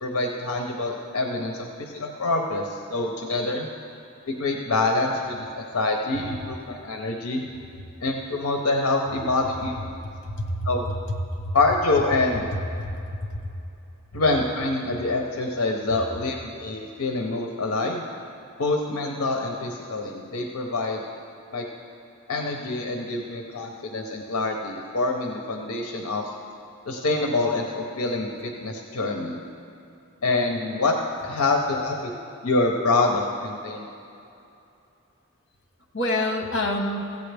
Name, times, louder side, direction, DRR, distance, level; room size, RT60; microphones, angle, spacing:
voice 1, 0.0-3.7 4.3-7.4 8.0-10.0 10.6-10.9 11.5-12.4 14.1-18.1 18.6-21.0 21.5-21.7 22.3-26.3 26.9-29.4 30.2-32.1 32.4-33.9, left 2 dB, 75° left, 2 dB, 0.7 m, -26 dB
voice 2, 10.2-10.7 11.4-11.5 12.8-13.0 13.4-13.5 35.9-37.2, left 1 dB, 55° left, 2 dB, 1.1 m, -27 dB
16.0 x 8.3 x 3.4 m, 2.7 s
head